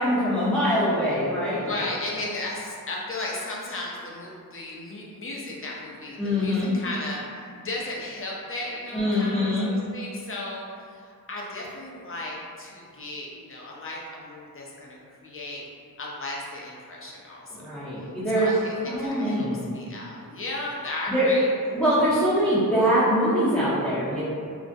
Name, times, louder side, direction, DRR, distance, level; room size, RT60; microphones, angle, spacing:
voice 1, 0.0-1.8 6.2-6.7 8.9-9.7 17.5-18.5 18.8-19.6 21.1-21.3 21.7-24.2, equal, 5° left, -12 dB, 0.7 m, -23 dB
voice 2, 1.6-15.6 16.0-17.6 18.3-21.5, left 2 dB, 40° left, -4 dB, 0.5 m, -35 dB
2.4 x 2.0 x 2.5 m, 2.3 s
wide cardioid pair, 75°, 35 cm